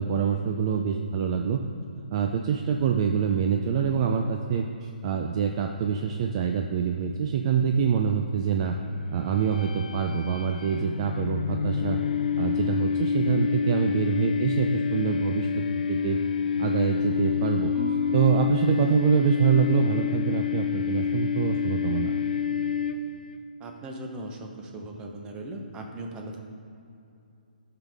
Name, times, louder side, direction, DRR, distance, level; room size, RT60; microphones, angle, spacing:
voice 1, 0.0-1.7 2.1-8.8 9.1-12.0 12.4-16.2 16.6-17.7 18.1-22.2, right 7 dB, 40° right, 4 dB, 0.4 m, -25 dB
sound 1, 9.3-23.4, left 7 dB, 60° left, 0.5 m, -28 dB
Marimba xylophone / Wood, 17.7-19.9, equal, 10° left, 2.1 m, -41 dB
voice 2, 23.6-26.4, right 1 dB, 15° right, 2 dB, 0.9 m, -38 dB
13.0 x 5.8 x 3.6 m, 2.6 s
hypercardioid pair, 145°, 5 cm